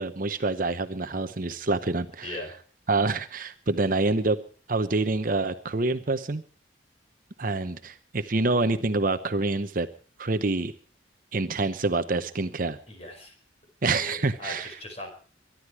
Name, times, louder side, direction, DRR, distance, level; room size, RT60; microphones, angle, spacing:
voice 1, 0.0-2.4 2.9-4.4 4.7-6.4 7.4-9.9 10.2-10.7 11.3-12.8 13.8-14.7, right 3 dB, 45° right, 11 dB, 0.8 m, -26 dB
voice 2, 2.2-2.5 12.9-13.3 13.9-15.1, left 1 dB, 35° left, 4 dB, 5.2 m, -39 dB
23.5 x 11.5 x 4.7 m, 0.40 s
head